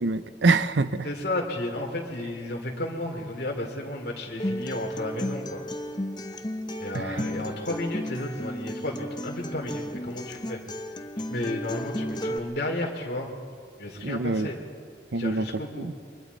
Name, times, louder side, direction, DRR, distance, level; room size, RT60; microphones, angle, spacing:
voice 1, 0.0-1.1 6.9-7.3 14.0-14.5 15.1-15.5 15.8-15.9, right 3 dB, 85° right, 13 dB, 0.7 m, -25 dB
voice 2, 1.0-5.6 6.8-10.6 11.2-13.4 13.8-14.6 15.1-15.9, left 1 dB, 60° left, -1 dB, 2.8 m, -33 dB
Acoustic guitar, 4.4-12.4, equal, 25° left, 0.9 m, -34 dB
28.5 x 23.5 x 4.1 m, 2.1 s
head